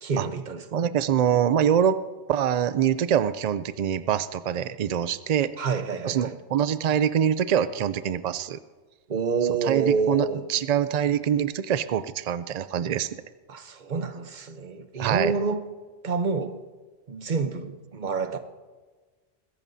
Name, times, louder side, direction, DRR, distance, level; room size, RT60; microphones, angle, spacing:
voice 1, 0.0-0.8 5.6-6.4 9.1-10.5 13.5-15.6 16.0-16.6 17.1-18.4, right 5 dB, 45° right, 9 dB, 0.9 m, -28 dB
voice 2, 0.7-2.0 2.3-5.5 6.0-8.6 9.6-13.1 15.0-15.3, right 9 dB, 75° right, 14 dB, 0.3 m, -24 dB
21.5 x 15.5 x 2.7 m, 1.4 s
omnidirectional pair, 1.2 m